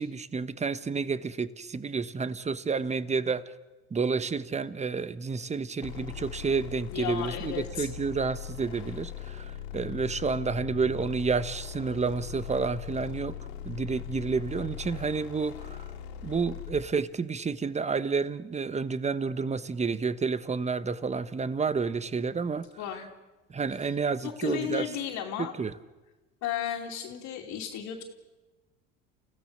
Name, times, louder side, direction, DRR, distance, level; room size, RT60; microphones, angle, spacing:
voice 1, 0.0-3.4 3.9-13.4 13.6-15.9 16.2-22.7 23.5-24.9 25.4-25.7, right 5 dB, 20° right, 14 dB, 1.2 m, -30 dB
sound 1, 5.8-16.9, left 10 dB, 80° left, 3.1 m, -40 dB
voice 2, 6.9-7.9 22.8-23.1 23.8-23.9 24.2-25.5 26.4-28.0, left 9 dB, 65° left, -3 dB, 2.9 m, -34 dB
30.0 x 16.0 x 6.7 m, 1.1 s
supercardioid pair, 90°, 31 cm